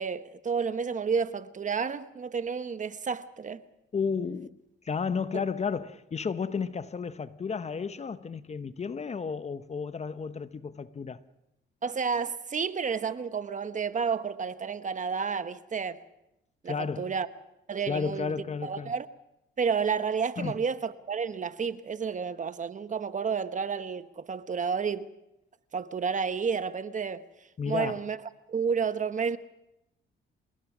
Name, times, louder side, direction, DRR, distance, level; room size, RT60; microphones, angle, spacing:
voice 1, 0.0-3.6 5.3-5.4 11.8-16.0 16.6-17.3 17.7-19.1 19.6-25.1 25.7-27.2 27.6-28.2 28.5-29.4, right 6 dB, 40° right, 1.1 m, -31 dB
voice 2, 3.9-4.6 4.8-11.2 16.7-17.1 17.9-18.9 20.4-20.6 27.6-28.0, left 5 dB, 35° left, 0.9 m, -32 dB
27.0 x 19.5 x 6.1 m
cardioid pair, 90°, 20 cm